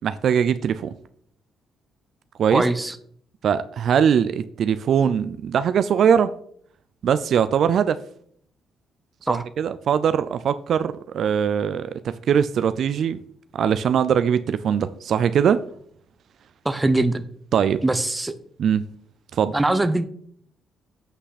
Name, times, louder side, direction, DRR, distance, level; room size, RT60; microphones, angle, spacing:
voice 1, 0.0-0.9 2.4-2.6 3.4-6.3 7.0-8.0 9.3-13.2 13.5-15.6 17.5-17.8 18.6-18.9 19.3-19.6, right 8 dB, 65° right, 12 dB, 0.4 m, -21 dB
voice 2, 2.5-2.9 9.3-9.4 16.6-17.2 17.8-18.3 19.5-20.1, right 2 dB, 15° right, 11 dB, 0.7 m, -21 dB
8.5 x 5.5 x 4.1 m, 0.62 s
cardioid pair, 90°, 0 cm